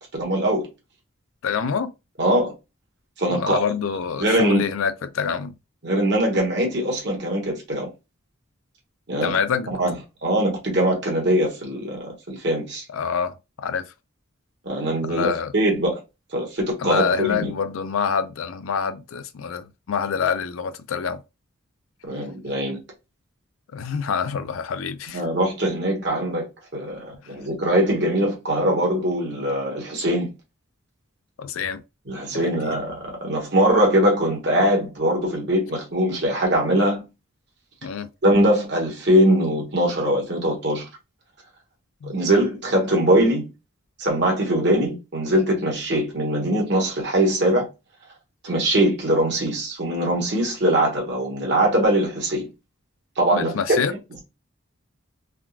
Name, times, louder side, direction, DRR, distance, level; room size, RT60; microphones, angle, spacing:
voice 1, 0.1-0.7 2.2-2.5 3.2-3.6 4.2-4.7 5.8-7.9 9.1-9.3 9.8-10.0 10.2-12.8 14.6-16.0 16.3-17.5 22.0-22.8 25.1-26.5 26.7-30.3 32.1-37.0 38.2-40.9 42.1-43.4 44.0-47.7 48.4-52.5 53.2-53.8, right 1 dB, 55° right, 1.2 m, -22 dB
voice 2, 1.4-1.9 3.3-5.5 9.2-9.7 12.9-13.9 15.0-15.5 16.8-21.2 23.7-25.2 31.4-31.8 32.3-32.8 37.8-38.1 42.0-42.1 53.3-53.9, left 6 dB, 80° left, 0.4 m, -26 dB
3.5 x 2.3 x 2.3 m
head